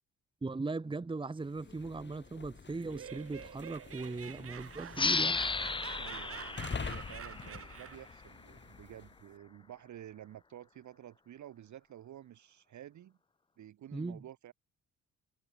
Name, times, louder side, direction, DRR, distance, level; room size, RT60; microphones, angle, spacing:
voice 1, 0.4-5.4 13.9-14.2, right 3 dB, 15° right, 1.2 m, -38 dB
sound 1, 1.4-9.2, left 5 dB, 35° left, 7.1 m, -46 dB
Laughter, 2.7-8.2, right 9 dB, 50° right, 1.3 m, -48 dB
sound 2, 4.9-8.2, left 4 dB, 15° left, 0.7 m, -34 dB
voice 2, 6.0-13.2 13.6-14.5, right 11 dB, 70° right, 4.9 m, -51 dB
cardioid pair, 90°, 30 cm